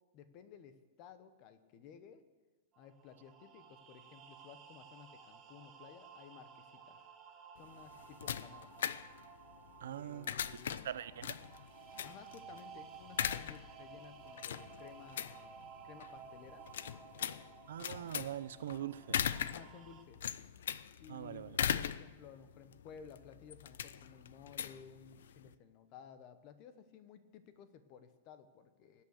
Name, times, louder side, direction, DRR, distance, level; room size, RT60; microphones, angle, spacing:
voice 1, 0.1-2.2 2.8-7.0 7.6-8.7 9.9-10.7 12.0-16.6 19.4-20.2 21.0-21.5 21.8-29.0, left 7 dB, 30° left, 11 dB, 0.9 m, -56 dB
sound 1, 2.7-20.0, right 7 dB, 20° right, 1.0 m, -56 dB
sound 2, 7.6-25.5, left 9 dB, 90° left, 0.6 m, -41 dB
voice 2, 9.8-10.3 10.7-11.4 17.7-19.2 21.1-21.6, right 11 dB, 80° right, 15 dB, 0.7 m, -42 dB
19.5 x 8.5 x 6.5 m, 1.3 s
supercardioid pair, 180°, 0 cm